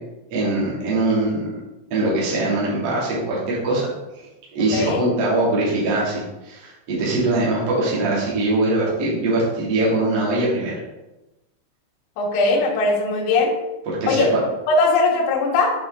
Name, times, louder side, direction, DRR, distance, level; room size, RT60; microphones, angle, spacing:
voice 1, 0.3-1.5 1.9-3.9 4.2-10.7 13.8-14.4, right 2 dB, 75° right, -6 dB, 1.3 m, -22 dB
voice 2, 12.2-13.5 14.1-14.3 14.7-15.7, left 3 dB, 80° left, -2 dB, 3.4 m, -19 dB
8.3 x 3.5 x 3.9 m, 1.0 s
omnidirectional pair, 5.7 m